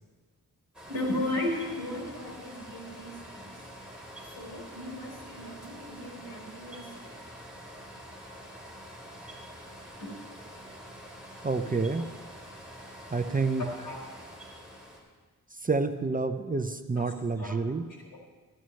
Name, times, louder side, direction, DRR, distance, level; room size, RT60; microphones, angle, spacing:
sound 1, 0.7-15.0, equal, ahead, 3.3 m, -46 dB
voice 1, 0.9-3.6 4.2-7.1 10.0-10.1 12.0-12.1 13.6-14.1 17.4-17.5 18.0-18.2, left 1 dB, 85° left, -2 dB, 4.1 m, -36 dB
voice 2, 11.4-12.1 13.1-13.6 15.5-17.9, right 3 dB, 25° right, 8 dB, 0.5 m, -28 dB
14.0 x 12.5 x 3.2 m, 1.4 s
wide cardioid pair, 80°, 35 cm